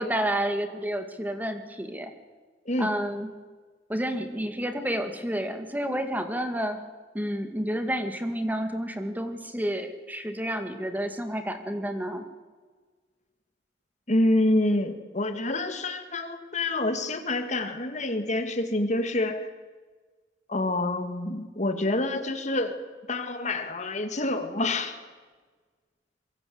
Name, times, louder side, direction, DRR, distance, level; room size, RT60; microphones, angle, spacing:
voice 1, 0.0-2.1 2.8-3.3 3.9-6.8 7.1-12.3, equal, 10° right, 7 dB, 2.1 m, -30 dB
voice 2, 14.1-19.5 20.5-22.8 23.1-25.0, left 2 dB, 40° left, 7 dB, 2.3 m, -27 dB
24.5 x 23.0 x 8.0 m, 1.4 s
head